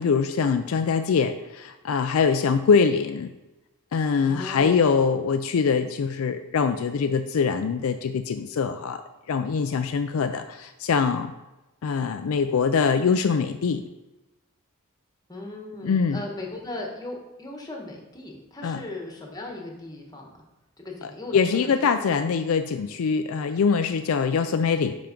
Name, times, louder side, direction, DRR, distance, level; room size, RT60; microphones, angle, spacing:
voice 1, 0.0-3.3 3.9-9.0 9.3-11.3 11.8-13.8 15.8-16.2 18.6-18.8 21.3-25.0, left 5 dB, 70° left, 8 dB, 0.4 m, -23 dB
voice 2, 4.3-5.0 15.3-20.3 20.8-22.1, left 2 dB, 20° left, 0 dB, 1.3 m, -37 dB
5.6 x 5.1 x 5.1 m, 1.0 s
head